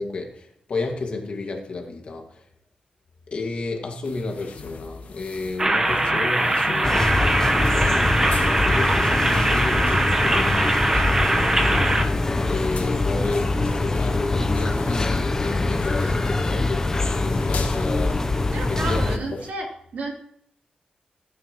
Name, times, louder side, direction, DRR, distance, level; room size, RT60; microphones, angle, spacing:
voice 1, 0.0-2.5 3.3-19.2, left 3 dB, 45° left, 1.9 m, -32 dB
sound 1, 4.0-19.5, left 5 dB, 80° left, 1.5 m, -41 dB
sound 2, 5.6-12.0, right 1 dB, 20° right, 1.0 m, -21 dB
sound 3, 6.8-19.2, left 2 dB, 20° left, 0.7 m, -23 dB
voice 2, 18.5-20.1, right 2 dB, 75° right, 3.1 m, -32 dB
16.0 x 9.3 x 3.0 m
wide cardioid pair, 160°, 3 cm